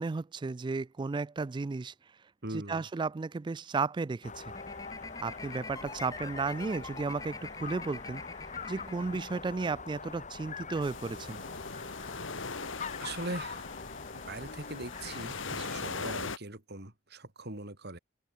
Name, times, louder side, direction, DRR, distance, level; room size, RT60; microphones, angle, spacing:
voice 1, 0.0-1.9 2.5-4.5 5.2-8.2 8.7-11.4, right 4 dB, 25° right, 0.3 m, -34 dB
voice 2, 2.4-2.9 13.0-13.8 14.3-18.0, right 2 dB, 55° right, 4.3 m, -41 dB
sound 1, 4.2-16.1, left 4 dB, 40° left, 3.4 m, -44 dB
sound 2, 4.5-9.8, left 3 dB, 20° left, 1.2 m, -46 dB
sound 3, 10.8-16.4, left 4 dB, 75° left, 2.4 m, -40 dB
open air
head